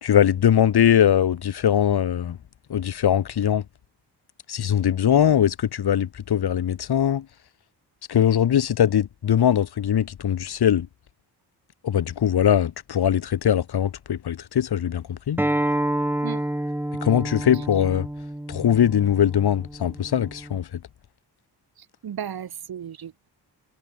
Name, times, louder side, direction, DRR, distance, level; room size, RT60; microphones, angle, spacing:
voice 1, 0.0-2.4 2.7-3.6 4.5-7.3 8.1-10.9 11.8-15.4 17.0-18.1 18.5-20.8, left 9 dB, 65° left, 3.9 m, -21 dB
Acoustic guitar, 15.4-20.6, right 1 dB, 5° right, 7.3 m, -28 dB
voice 2, 21.8-23.3, right 9 dB, 60° right, 5.7 m, -35 dB
wide cardioid pair, 180°, 41 cm